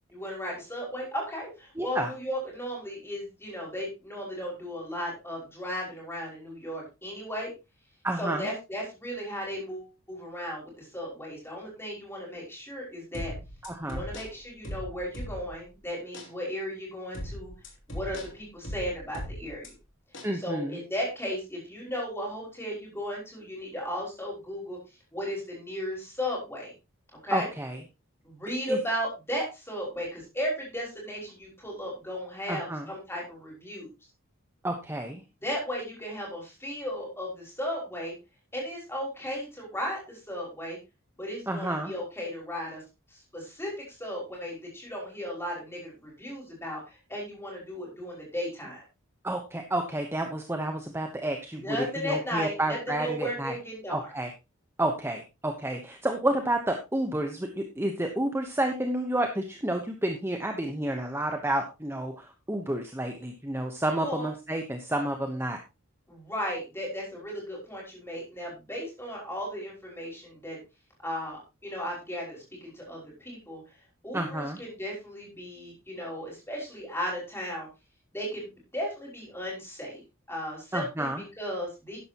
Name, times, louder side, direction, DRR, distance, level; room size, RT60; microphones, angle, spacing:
voice 1, 0.1-7.5 8.2-13.3 13.9-17.5 17.9-19.7 20.3-24.8 25.1-26.7 27.2-27.5 28.2-33.9 35.4-38.1 38.5-40.8 41.2-42.8 43.1-48.8 51.5-54.1 64.0-64.3 66.1-70.6 71.0-73.6 74.0-77.7 78.1-80.0 80.3-81.1 81.4-82.0, equal, 10° left, -2 dB, 5.8 m, -35 dB
voice 2, 1.8-2.1 8.0-8.5 13.6-14.1 20.2-20.8 27.3-27.8 28.7-28.8 32.5-32.9 34.6-35.2 41.5-41.9 49.2-53.5 53.9-54.3 54.8-65.6 74.1-74.6 80.7-81.2, right 1 dB, 10° right, 4 dB, 1.0 m, -30 dB
sound 1, 13.1-15.7 16.1-16.3 17.1-19.7 20.1-20.3, equal, 60° left, 3.0 m, -39 dB
12.5 x 10.5 x 3.0 m, 0.26 s
head